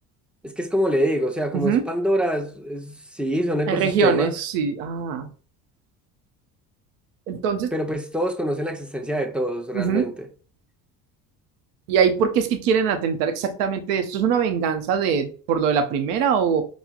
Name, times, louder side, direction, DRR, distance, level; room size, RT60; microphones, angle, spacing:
voice 1, 0.4-4.3 7.7-10.3, equal, ahead, 0.5 m, -25 dB
voice 2, 1.5-1.8 3.7-5.3 7.3-7.7 9.7-10.1 11.9-16.7, right 7 dB, 85° right, 0.6 m, -22 dB
4.4 x 2.0 x 2.4 m
hypercardioid pair, 65°, 46 cm